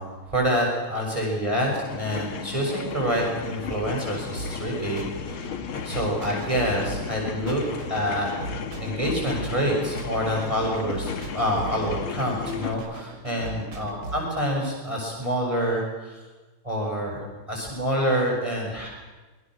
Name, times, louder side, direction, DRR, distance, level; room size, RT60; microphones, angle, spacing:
voice 1, 0.0-5.6 5.8-7.6 7.9-8.3 8.8-16.2 16.6-18.9, equal, 15° right, -2 dB, 6.9 m, -27 dB
sound 1, 1.8-12.7, left 7 dB, 75° left, 2.3 m, -35 dB
sound 2, 4.3-14.3, right 2 dB, 65° right, 4.2 m, -38 dB
26.0 x 23.5 x 6.5 m, 1.2 s
omnidirectional pair, 2.4 m